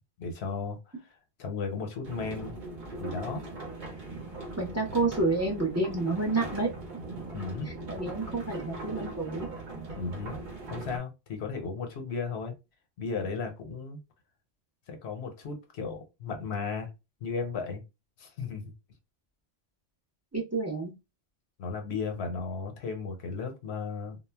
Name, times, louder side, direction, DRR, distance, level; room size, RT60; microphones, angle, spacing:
voice 1, 0.2-2.5 3.0-3.4 7.3-7.7 9.9-10.3 10.7-12.5 13.0-14.0 14.9-16.9 17.2-17.8 18.2-18.6 21.6-24.2, left 4 dB, 80° left, 1.0 m, -35 dB
sound 1, 2.0-11.0, right 2 dB, 55° right, 0.8 m, -40 dB
voice 2, 4.6-6.7 7.9-9.5 20.3-20.9, right 3 dB, 20° right, 0.5 m, -29 dB
2.2 x 2.0 x 3.3 m
omnidirectional pair, 1.1 m